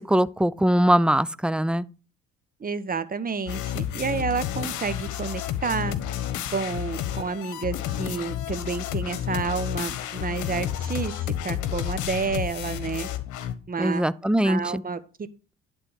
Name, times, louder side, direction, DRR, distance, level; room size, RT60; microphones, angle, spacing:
voice 1, 0.0-1.9 13.8-14.8, equal, 5° right, 0.3 m, -22 dB
voice 2, 2.6-6.0 6.5-13.1 13.7-14.1 14.4-15.0, right 5 dB, 30° right, 1.0 m, -30 dB
sound 1, 3.5-13.5, left 11 dB, 70° left, 1.1 m, -31 dB
11.0 x 3.7 x 6.2 m
hypercardioid pair, 65°, 31 cm